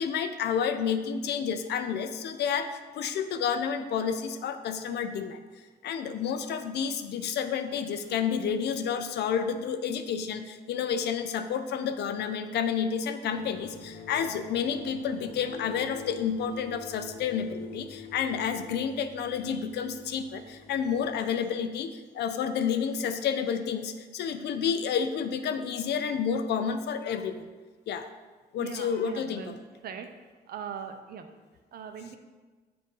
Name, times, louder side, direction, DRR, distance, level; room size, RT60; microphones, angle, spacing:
voice 1, 0.0-5.4 5.8-27.4 27.9-28.1 28.5-29.4, left 7 dB, 80° left, 9 dB, 0.5 m, -30 dB
sound 1, 13.3-21.2, left 5 dB, 35° left, 0.7 m, -46 dB
voice 2, 28.6-29.6 29.8-30.1 30.5-31.3 31.7-32.2, right 7 dB, 65° right, 7 dB, 0.6 m, -40 dB
7.5 x 2.6 x 5.4 m, 1.3 s
cardioid pair, 150°, 17 cm